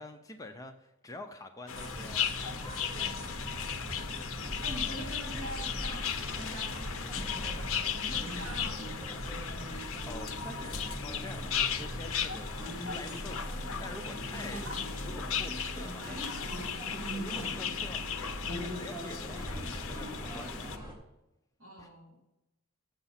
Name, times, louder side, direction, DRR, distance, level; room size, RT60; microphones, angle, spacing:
voice 1, 0.0-3.2 10.0-14.7 15.0-16.2 17.1-20.7 21.8-21.9, left 2 dB, 15° left, 6 dB, 0.4 m, -47 dB
sound 1, 1.7-20.8, left 8 dB, 65° left, 0.6 m, -37 dB
sound 2, 1.7-20.9, equal, 15° right, 1.4 m, -40 dB
voice 2, 4.6-9.8 14.4-14.9 15.6-16.9 17.3-17.5 21.6-22.2, right 1 dB, 65° right, 1 dB, 2.6 m, -45 dB
7.0 x 6.7 x 5.7 m, 0.94 s
head